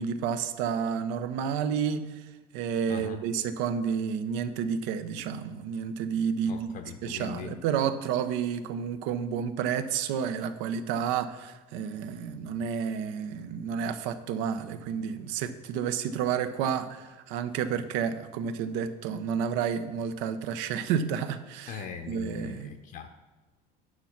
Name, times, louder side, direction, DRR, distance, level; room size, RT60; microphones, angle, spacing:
voice 1, 0.0-22.7, right 7 dB, 75° right, 11 dB, 0.8 m, -30 dB
voice 2, 2.9-3.2 6.4-7.5 21.7-23.1, left 8 dB, 45° left, 5 dB, 0.7 m, -40 dB
9.7 x 5.9 x 5.8 m, 1.2 s
cardioid pair, 150°, 19 cm